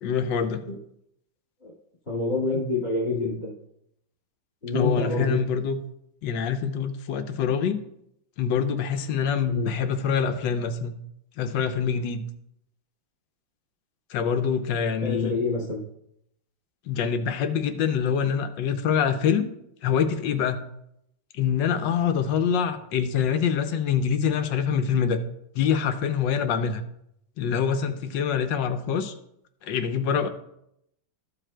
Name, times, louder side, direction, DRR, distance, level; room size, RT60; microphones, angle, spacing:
voice 1, 0.0-0.6 4.7-5.8 6.2-7.8 8.4-11.0 11.4-12.2 14.1-15.4 16.9-19.5 19.8-20.6 21.3-25.2 25.5-26.8 27.4-29.1 29.6-30.3, left 7 dB, 75° left, 9 dB, 1.3 m, -25 dB
voice 2, 2.1-3.5 4.6-5.4 9.5-9.7 15.0-15.8, left 2 dB, 35° left, -7 dB, 1.9 m, -27 dB
14.0 x 7.4 x 2.2 m, 0.78 s
omnidirectional pair, 2.2 m